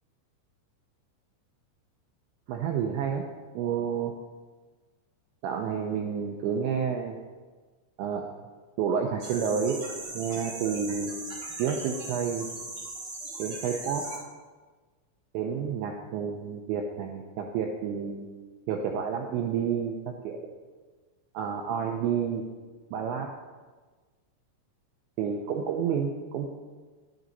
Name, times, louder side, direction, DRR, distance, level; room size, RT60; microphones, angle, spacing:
voice 1, 2.5-3.3 3.5-4.1 5.4-7.2 8.0-8.3 8.8-9.8 10.1-11.2 11.6-12.5 13.4-14.3 15.3-18.3 18.7-20.4 21.3-22.5 22.9-23.3 25.2-26.5, right 7 dB, 85° right, 2 dB, 2.6 m, -30 dB
sound 1, 9.2-14.2, right 2 dB, 40° right, 2.4 m, -39 dB
11.5 x 9.2 x 4.0 m, 1.4 s
omnidirectional pair, 6.0 m